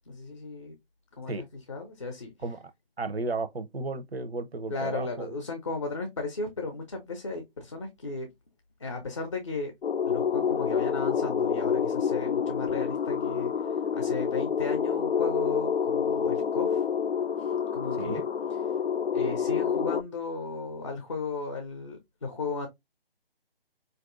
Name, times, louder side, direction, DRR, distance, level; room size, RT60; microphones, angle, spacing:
voice 1, 0.1-0.7 1.1-2.3 4.7-8.3 8.8-9.7 10.0-13.5 13.9-16.8 17.4-18.2 19.1-22.7, left 3 dB, 30° left, 0.6 m, -35 dB
voice 2, 3.0-5.3 17.9-18.2, right 3 dB, 90° right, 0.7 m, -34 dB
sound 1, 9.8-20.0, left 7 dB, 85° left, 0.5 m, -28 dB
4.3 x 2.6 x 2.4 m
figure-of-eight pair, 155°, 30 cm